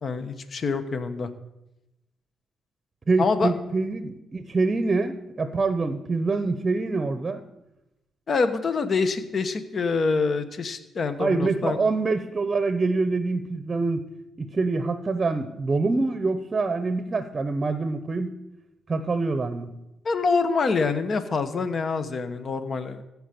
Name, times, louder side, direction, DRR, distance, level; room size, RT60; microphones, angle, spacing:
voice 1, 0.0-1.3 3.2-3.5 8.3-11.8 20.0-23.0, left 4 dB, 45° left, 9 dB, 1.1 m, -25 dB
voice 2, 3.1-7.4 11.2-14.0 14.4-18.3 18.9-19.7, right 3 dB, 30° right, 10 dB, 0.8 m, -25 dB
14.5 x 4.8 x 8.5 m, 0.95 s
cardioid pair, 90°, 0 cm